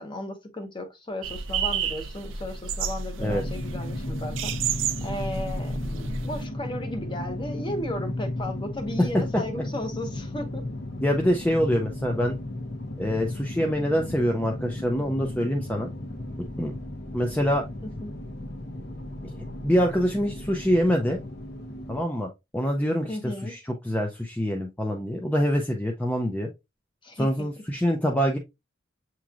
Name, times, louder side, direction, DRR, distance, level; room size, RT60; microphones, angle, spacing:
voice 1, 0.0-10.6 18.0-18.1 23.1-23.6 27.0-27.3, left 1 dB, 25° left, 0.8 m, -35 dB
sound 1, 1.2-6.4, right 6 dB, 85° right, 0.5 m, -31 dB
sound 2, 3.2-22.0, left 1 dB, 55° left, 1.0 m, -35 dB
voice 2, 11.0-12.4 13.0-15.9 16.6-16.8 17.1-17.7 19.6-21.2 21.9-26.5 27.2-28.4, equal, 10° left, 0.5 m, -25 dB
7.1 x 3.0 x 2.4 m
head